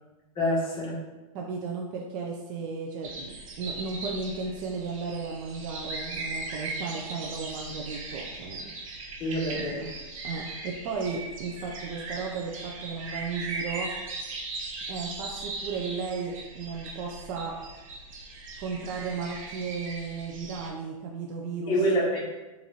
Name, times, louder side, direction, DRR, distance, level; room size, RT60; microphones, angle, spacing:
voice 1, 0.3-1.0 9.2-9.9 21.7-22.2, equal, 25° left, -5 dB, 1.3 m, -26 dB
voice 2, 1.3-8.7 10.2-13.9 14.9-17.6 18.6-22.1, right 5 dB, 35° right, 0 dB, 0.4 m, -35 dB
sound 1, 3.0-20.7, right 2 dB, 70° right, 0.8 m, -39 dB
4.1 x 2.6 x 2.8 m, 1.1 s
hypercardioid pair, 125°, 18 cm